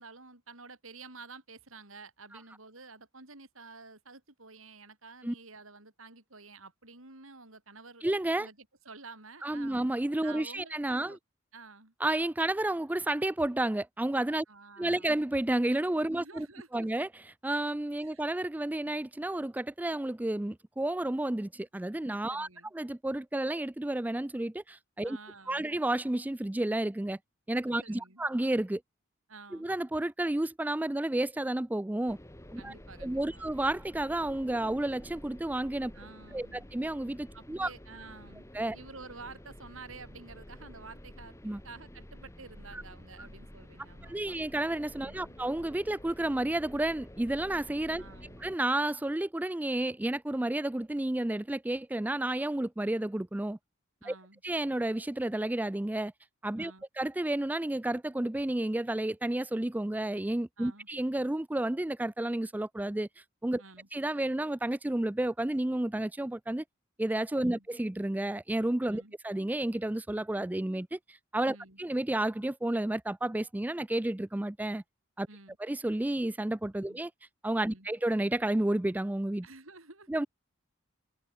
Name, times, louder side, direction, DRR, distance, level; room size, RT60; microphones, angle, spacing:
voice 1, 0.0-8.1 8.4-9.8 10.2-11.2 11.5-11.9 14.5-15.2 16.2-16.9 18.0-18.2 22.3-22.7 25.0-25.8 27.8-28.2 29.3-29.7 32.6-33.5 35.9-36.7 37.3-38.5 38.7-41.4 41.6-44.4 45.0-45.4 48.0-48.4 54.0-54.4 56.6-56.8 60.6-60.9 63.6-63.9 67.4-67.7 68.9-69.2 71.5-71.8 75.3-75.6 76.9-77.0 77.6-77.9 79.4-80.1, right 4 dB, 80° right, 7.1 m, -50 dB
voice 2, 8.0-8.5 9.4-11.2 12.0-14.5 14.8-16.5 16.7-22.5 22.7-25.2 25.5-27.2 27.5-28.8 29.5-32.2 32.5-32.7 33.0-35.9 36.3-37.7 38.5-38.8 41.4-41.6 42.7-42.8 43.2-43.3 44.0-48.0 48.4-53.6 54.0-54.1 54.4-56.1 56.4-56.7 57.0-63.6 63.9-66.6 67.0-74.8 75.2-75.3 75.6-77.1 77.4-79.5 80.1-80.3, right 1 dB, 10° right, 0.3 m, -31 dB
sound 1, 32.1-48.6, equal, 15° left, 1.7 m, -50 dB
head